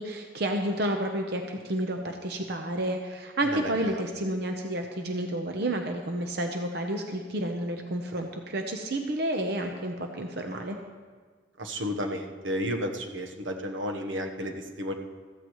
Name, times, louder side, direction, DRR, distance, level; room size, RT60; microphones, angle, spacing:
voice 1, 0.0-10.8, right 1 dB, 55° right, 4 dB, 0.8 m, -30 dB
voice 2, 11.6-14.9, equal, 80° right, 4 dB, 1.1 m, -32 dB
14.5 x 14.5 x 3.1 m, 1.5 s
head